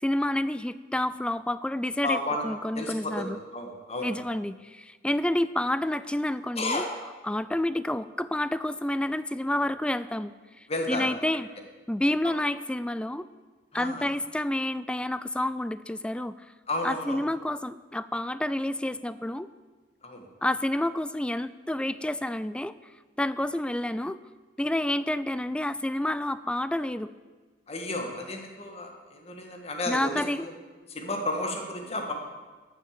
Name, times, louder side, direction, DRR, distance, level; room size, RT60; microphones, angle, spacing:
voice 1, 0.0-3.4 4.0-6.9 7.2-10.3 10.6-11.5 11.9-13.3 13.7-16.4 16.8-19.5 20.4-22.7 23.2-24.2 24.6-27.1 29.9-30.5, left 1 dB, 5° left, 15 dB, 0.3 m, -29 dB
voice 2, 2.0-2.4 2.8-4.2 6.6-6.9 10.7-11.1 12.2-12.3 13.7-14.1 16.7-17.2 20.0-20.3 27.7-30.5 30.9-32.1, left 2 dB, 35° left, 3 dB, 1.7 m, -32 dB
13.0 x 6.7 x 7.5 m, 1.3 s
head